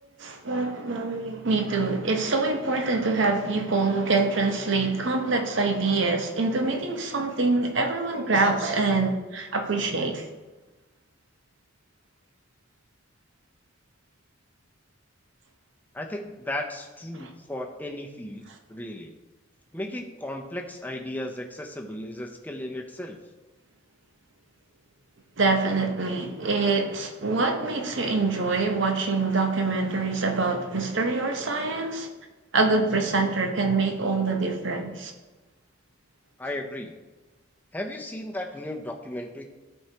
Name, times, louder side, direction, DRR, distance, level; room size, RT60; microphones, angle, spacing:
voice 1, 0.0-10.3 17.2-17.3 25.4-32.1 32.5-35.1, right 3 dB, 65° right, 0.9 m, -25 dB
voice 2, 15.9-19.1 19.7-23.2 36.4-36.9 37.7-39.4, left 1 dB, 10° left, 0.6 m, -35 dB
12.0 x 4.6 x 2.9 m
head